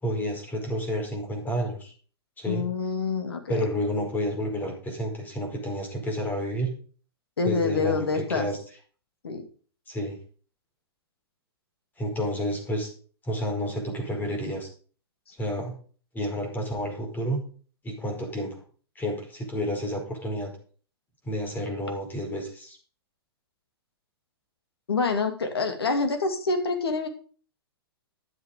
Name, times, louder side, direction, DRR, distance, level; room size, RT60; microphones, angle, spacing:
voice 1, 0.0-1.9 2.4-2.6 3.5-6.7 7.4-8.6 9.9-10.2 12.0-12.9 13.2-14.7 15.3-15.7 16.1-17.4 17.8-18.6 18.9-20.5 21.2-22.8, equal, 15° left, 2 dB, 5.0 m, -30 dB
voice 2, 2.5-3.7 7.4-8.5 9.2-9.4 24.9-27.1, left 4 dB, 70° left, 6 dB, 2.4 m, -26 dB
12.5 x 8.0 x 5.2 m, 0.41 s
figure-of-eight pair, 110°, 13 cm